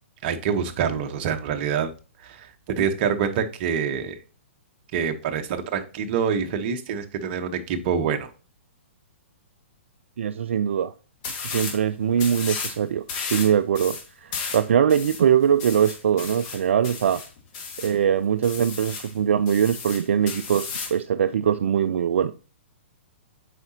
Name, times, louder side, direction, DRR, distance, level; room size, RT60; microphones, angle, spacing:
voice 1, 0.2-1.9 2.2-2.5 2.8-4.2 4.9-8.3, right 7 dB, 45° right, 7 dB, 1.0 m, -26 dB
voice 2, 10.2-10.9 11.4-13.0 13.3-17.2 17.8-22.3, right 8 dB, 70° right, 11 dB, 0.3 m, -22 dB
sound 1, 11.2-11.8 12.2-12.8 13.1-18.0 18.4-19.1 19.5-21.0, left 5 dB, 40° left, 1.8 m, -34 dB
7.9 x 5.0 x 2.8 m, 0.35 s
hypercardioid pair, 130°, 7 cm